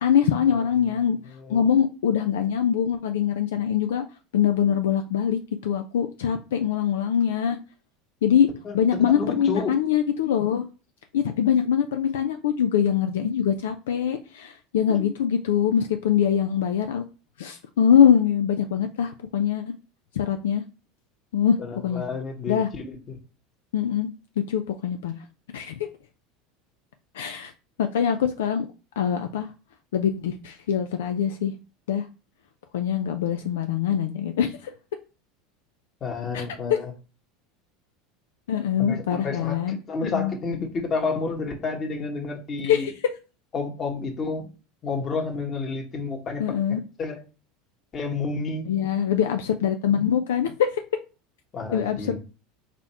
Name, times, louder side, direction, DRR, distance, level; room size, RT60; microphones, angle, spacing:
voice 1, 0.0-1.2 1.5-4.0 4.3-7.6 8.2-8.5 8.7-10.6 11.1-17.0 17.4-19.6 20.1-20.6 21.3-21.6 21.8-22.0 22.5-22.7 23.7-24.1 24.5-25.2 25.5-25.9 27.1-27.5 27.8-28.7 29.0-29.5 29.9-31.5 31.9-32.1 32.7-34.7 36.3-36.8 38.5-40.3 42.6-42.9 46.4-46.8 48.7-50.8 51.7-52.2, left 8 dB, 80° left, 8 dB, 0.4 m, -23 dB
voice 2, 1.4-1.7 8.6-9.7 14.9-15.1 21.6-23.2 36.0-36.9 38.8-42.9 43.5-44.5 44.8-46.4 47.0-47.2 47.9-48.6 51.5-52.2, left 4 dB, 35° left, 3 dB, 1.4 m, -30 dB
4.0 x 2.9 x 4.3 m, 0.33 s
hypercardioid pair, 85°, 0 cm